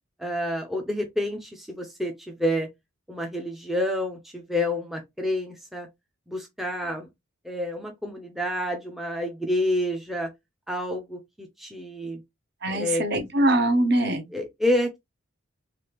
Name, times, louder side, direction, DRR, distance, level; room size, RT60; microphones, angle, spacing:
voice 1, 0.2-2.7 3.1-5.9 6.3-7.1 7.5-10.3 10.7-12.2 12.7-13.0 14.3-15.0, left 1 dB, ahead, 0.4 m, -28 dB
voice 2, 12.6-14.3, right 1 dB, 50° right, 0.7 m, -23 dB
3.3 x 2.4 x 2.9 m
head